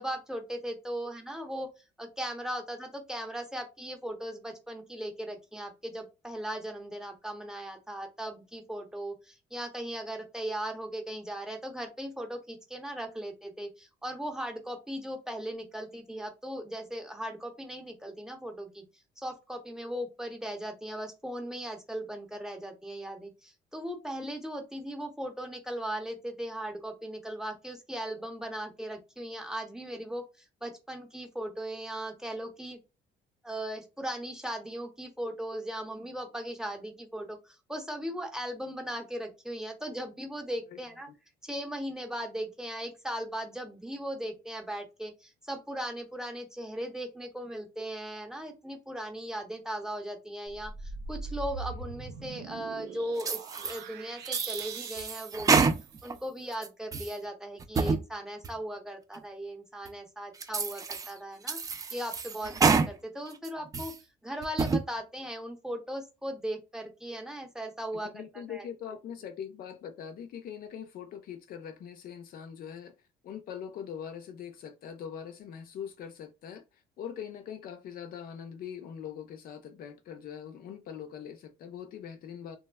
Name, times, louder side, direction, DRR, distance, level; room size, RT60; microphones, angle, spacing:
voice 1, 0.0-1.7 2.0-18.8 19.2-30.2 30.6-32.8 33.4-41.1 41.4-55.7 56.0-63.9 64.2-68.7, right 1 dB, 5° right, 0.7 m, -38 dB
sound 1, 50.5-56.3, right 4 dB, 80° right, 0.6 m, -42 dB
sound 2, 53.2-53.8 54.2-56.1 56.5-57.1 57.6-58.0 58.4-58.5 59.1-59.2 59.9-60.0 60.4-61.1 61.5-62.9 63.3-64.0 64.4-64.8, right 4 dB, 20° right, 0.3 m, -28 dB
voice 2, 68.0-73.0 73.2-76.6 77.0-82.6, left 8 dB, 60° left, 0.5 m, -42 dB
3.3 x 2.1 x 2.3 m
cardioid pair, 110°, 17 cm